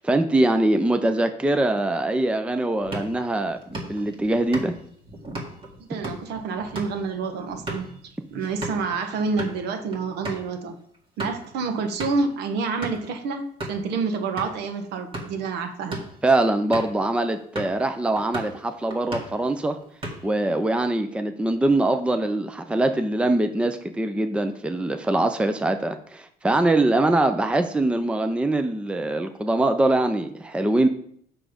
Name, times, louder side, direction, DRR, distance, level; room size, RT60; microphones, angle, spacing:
voice 1, 0.0-4.7 5.9-6.0 16.2-19.8 20.2-30.9, right 2 dB, 5° right, 8 dB, 0.5 m, -23 dB
sound 1, 2.8-8.9 9.2-9.6 9.9-10.0 10.2-10.5 10.9-11.5 12.0-12.3 12.8-13.1 13.6-13.9 14.4-14.5 15.0-15.4 15.8-16.2 16.7-17.0 17.6-17.8 18.2-18.6 18.9-19.4 19.8-20.4, right 1 dB, 30° right, 2.0 m, -35 dB
voice 2, 5.9-8.0 8.3-10.8 11.2-16.0, right 4 dB, 80° right, 7 dB, 1.1 m, -28 dB
6.7 x 6.2 x 5.1 m, 0.64 s
cardioid pair, 110°, 17 cm